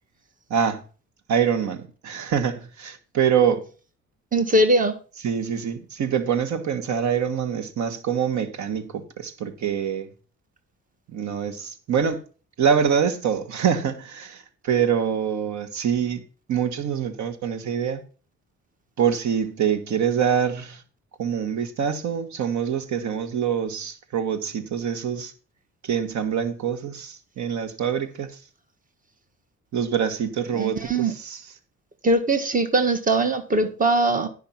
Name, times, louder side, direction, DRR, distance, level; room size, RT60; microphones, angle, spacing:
voice 1, 0.5-0.8 1.3-3.6 5.2-10.1 11.1-12.2 12.6-16.2 16.5-18.0 19.0-20.8 21.2-25.3 25.8-28.3 29.7-31.4, right 7 dB, 70° right, 1.5 m, -25 dB
voice 2, 4.3-4.9 30.5-31.1 32.0-34.3, right 2 dB, 25° right, 1.6 m, -21 dB
10.5 x 5.8 x 5.8 m
cardioid pair, 90°, 30 cm